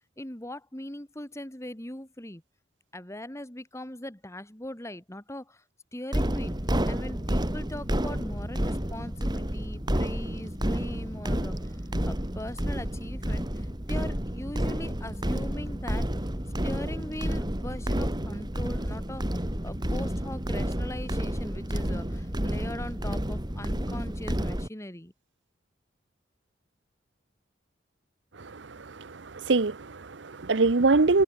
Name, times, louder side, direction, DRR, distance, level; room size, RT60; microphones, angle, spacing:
voice 1, 0.2-2.4 2.9-5.6 5.9-6.6 6.8-16.1 16.6-25.1, left 1 dB, 15° left, 2.4 m, -40 dB
sound 1, 6.1-24.7, equal, 25° right, 2.8 m, -30 dB
voice 2, 28.4-31.2, right 3 dB, 80° right, 0.9 m, -24 dB
head